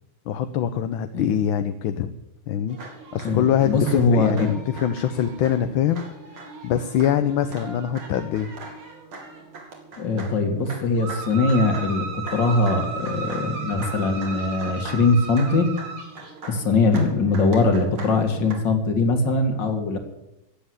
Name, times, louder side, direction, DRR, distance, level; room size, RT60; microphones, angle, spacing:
voice 1, 0.3-2.1 2.5-2.8 3.1-6.1 6.6-8.5, left 9 dB, 70° left, 9 dB, 1.5 m, -23 dB
sound 1, 2.7-18.5, right 4 dB, 70° right, 3.4 m, -37 dB
voice 2, 3.2-4.5 10.0-15.7 16.5-20.0, left 3 dB, 55° left, 6 dB, 2.6 m, -21 dB
15.5 x 7.8 x 9.6 m, 0.89 s
omnidirectional pair, 2.4 m